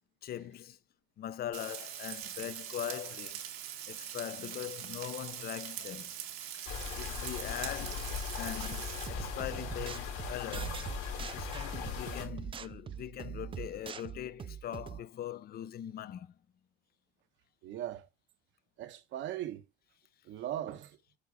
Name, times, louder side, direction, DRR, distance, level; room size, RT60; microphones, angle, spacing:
voice 1, 0.2-0.8 1.2-3.4 3.9-6.1 6.5-10.9 11.2-16.3, left 11 dB, 50° left, 0.6 m, -41 dB
Frying (food), 1.5-9.1, right 10 dB, 85° right, 1.6 m, -42 dB
sound 1, 6.6-12.3, left 7 dB, 85° left, 3.8 m, -39 dB
sound 2, 8.6-15.0, right 8 dB, 25° right, 0.4 m, -43 dB
voice 2, 17.6-18.1 18.8-19.6 20.2-21.0, right 12 dB, 65° right, 1.1 m, -39 dB
8.3 x 4.1 x 5.1 m
cardioid pair, 100°, 21 cm